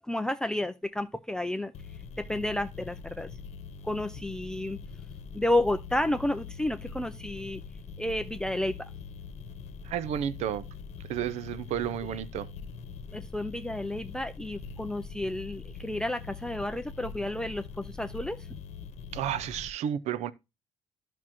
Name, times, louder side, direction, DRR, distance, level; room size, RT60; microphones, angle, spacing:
voice 1, 0.1-1.7 2.3-3.3 3.8-4.8 5.3-7.6 8.0-8.9 13.1-18.4, left 1 dB, 5° left, 0.4 m, -31 dB
sound 1, 1.7-19.7, left 5 dB, 75° left, 0.9 m, -43 dB
voice 2, 9.8-10.6 11.1-12.5 19.1-20.3, right 10 dB, 85° right, 0.5 m, -32 dB
12.0 x 6.1 x 2.9 m
cardioid pair, 135°, 11 cm